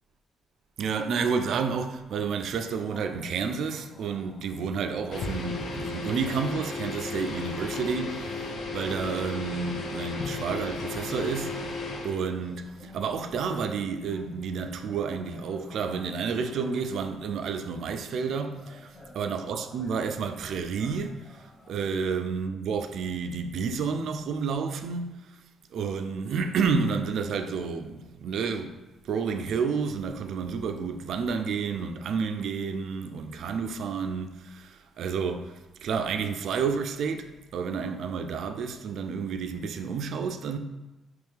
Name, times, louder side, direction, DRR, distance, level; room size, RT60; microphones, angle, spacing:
voice 1, 0.8-8.4 8.7-11.6 12.0-25.3 25.7-28.8 29.0-40.6, right 5 dB, 70° right, 0.3 m, -30 dB
sound 1, 2.7-21.7, left 1 dB, 30° left, 1.1 m, -52 dB
sound 2, 5.1-12.2, left 3 dB, 65° left, 0.4 m, -34 dB
3.5 x 3.0 x 3.3 m
cardioid pair, 90°, 0 cm